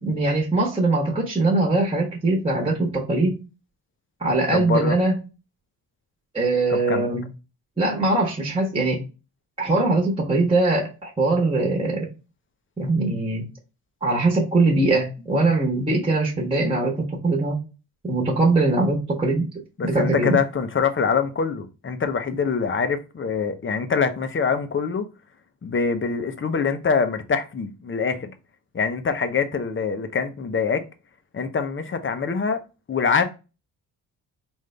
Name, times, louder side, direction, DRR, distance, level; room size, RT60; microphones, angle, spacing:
voice 1, 0.0-3.4 4.2-5.1 6.3-7.2 7.8-9.0 9.6-12.1 12.8-13.4 14.0-17.6 18.0-19.5 19.8-20.4, right 2 dB, 15° right, 1.3 m, -21 dB
voice 2, 4.5-5.0 6.7-7.1 19.8-25.1 25.6-28.3 28.7-30.8 31.3-32.6 32.9-33.2, left 5 dB, 30° left, 0.7 m, -24 dB
3.7 x 2.6 x 3.2 m
cardioid pair, 65°, 39 cm